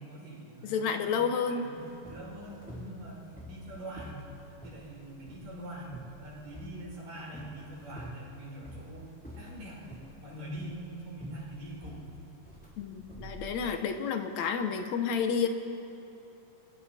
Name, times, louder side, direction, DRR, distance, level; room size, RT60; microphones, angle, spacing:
voice 1, 0.0-4.3 4.6-12.2, right 1 dB, 75° right, -5 dB, 6.8 m, -44 dB
voice 2, 0.6-1.7 12.8-15.5, left 6 dB, 65° left, 7 dB, 2.0 m, -30 dB
sound 1, 1.8-14.0, equal, 5° left, 2.9 m, -48 dB
28.5 x 22.5 x 4.3 m, 3.0 s
omnidirectional pair, 3.9 m